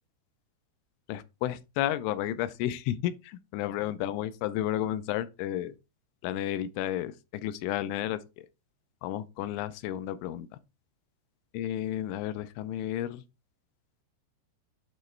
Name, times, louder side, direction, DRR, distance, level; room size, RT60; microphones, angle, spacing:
voice 1, 1.1-3.1 3.5-5.7 6.2-7.1 7.4-8.2 9.0-10.5 11.5-13.2, left 12 dB, 90° left, 3.0 m, -32 dB
8.7 x 3.1 x 4.4 m
omnidirectional pair, 5.4 m